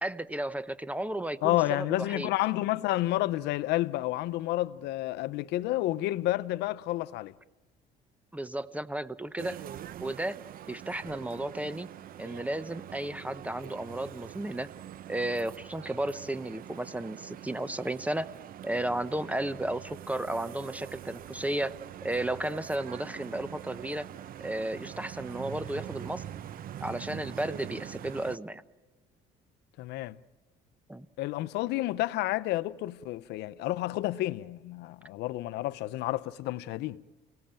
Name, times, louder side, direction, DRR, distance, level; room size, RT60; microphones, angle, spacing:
voice 1, 0.0-2.3 8.3-9.6 10.0-10.4 10.7-11.9 12.2-14.7 15.1-18.3 18.6-21.8 22.0-24.1 24.4-26.2 26.8-28.6 30.9-31.1, right 1 dB, 10° right, 0.8 m, -33 dB
voice 2, 1.4-7.3 29.8-30.2 31.2-37.0, left 16 dB, 85° left, 0.7 m, -30 dB
sound 1, 9.4-28.4, right 11 dB, 60° right, 0.8 m, -44 dB
30.0 x 17.5 x 9.0 m
cardioid pair, 110°, 17 cm